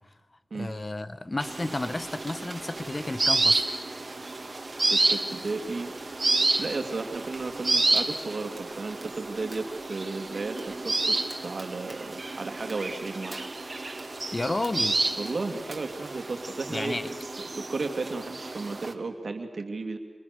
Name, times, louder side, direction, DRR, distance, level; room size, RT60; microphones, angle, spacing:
voice 1, 0.5-3.7 14.3-15.0 16.7-17.1, left 2 dB, 35° left, 1.3 m, -32 dB
sound 1, 1.4-18.9, right 2 dB, 45° right, 2.4 m, -30 dB
voice 2, 4.8-5.9 6.6-13.4 15.2-17.0 17.4-20.0, right 3 dB, 75° right, 2.5 m, -34 dB
sound 2, 7.9-8.1 8.6-9.8 10.6-10.7 11.3-12.0 12.6-13.0 13.3-14.1 14.6-14.8 15.2-15.8, right 2 dB, 30° right, 3.9 m, -47 dB
29.5 x 27.0 x 6.8 m
wide cardioid pair, 65°, 0 cm